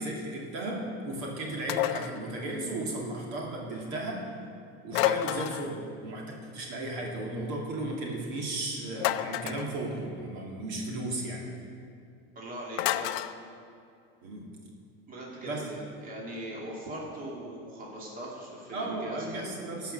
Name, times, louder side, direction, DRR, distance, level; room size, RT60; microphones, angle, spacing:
voice 1, 0.0-4.3 4.8-11.4 14.2-14.5 15.4-15.6 18.7-19.9, right 2 dB, 60° right, -2 dB, 2.5 m, -35 dB
sound 1, 1.7-2.2 4.9-5.7 9.0-9.7 12.8-13.3, left 14 dB, 75° left, 0.5 m, -29 dB
voice 2, 12.4-13.3 15.1-19.5, equal, 30° right, -3 dB, 2.4 m, -40 dB
15.5 x 5.8 x 6.7 m, 2.4 s
supercardioid pair, 145°, 30 cm